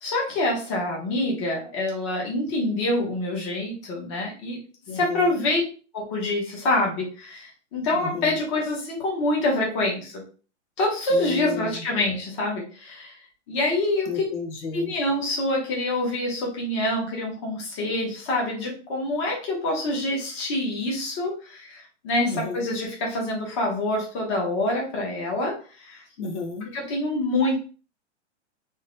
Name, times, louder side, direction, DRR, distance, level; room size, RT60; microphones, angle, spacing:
voice 1, 0.0-4.6 4.9-5.6 5.9-10.2 10.8-13.1 13.5-14.2 14.7-25.6 25.9-26.0 26.7-27.6, left 1 dB, 25° left, -1 dB, 1.1 m, -26 dB
voice 2, 4.9-5.5 7.9-8.4 11.1-11.9 14.1-14.9 22.2-22.7 26.2-26.7, left 4 dB, 75° left, 4 dB, 1.0 m, -32 dB
3.8 x 2.8 x 3.1 m, 0.37 s
hypercardioid pair, 170°, 36 cm